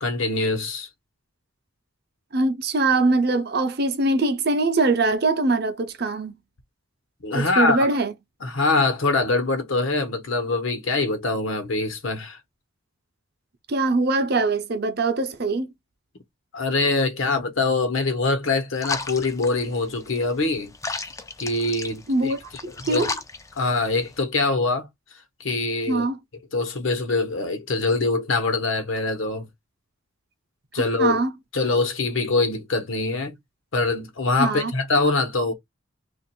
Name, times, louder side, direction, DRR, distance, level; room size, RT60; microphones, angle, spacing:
voice 1, 0.0-0.9 7.2-7.9 8.4-12.4 16.5-20.7 21.4-22.3 22.8-23.1 23.6-24.9 25.4-26.1 26.5-29.5 30.7-31.2 31.5-33.3 33.7-35.5, left 3 dB, 70° left, 1.0 m, -24 dB
voice 2, 2.3-6.3 7.3-8.1 13.7-15.7 22.1-22.4 22.9-23.1 25.9-26.2 31.0-31.3 34.4-34.7, right 3 dB, 50° right, 0.6 m, -22 dB
sound 1, 18.8-24.2, left 3 dB, 15° left, 0.3 m, -35 dB
3.0 x 2.5 x 4.3 m
head